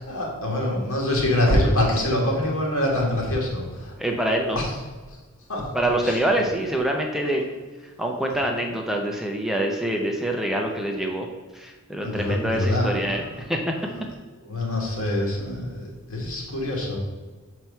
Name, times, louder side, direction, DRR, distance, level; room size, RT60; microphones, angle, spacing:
voice 1, 0.0-3.9 5.5-5.6 6.0-6.1 12.0-12.9 14.5-17.0, left 1 dB, 65° left, -2 dB, 2.0 m, -24 dB
voice 2, 4.0-4.6 5.7-7.4 8.0-11.3 11.5-13.6, right 1 dB, ahead, 1 dB, 0.6 m, -25 dB
6.0 x 4.6 x 5.5 m, 1.3 s
head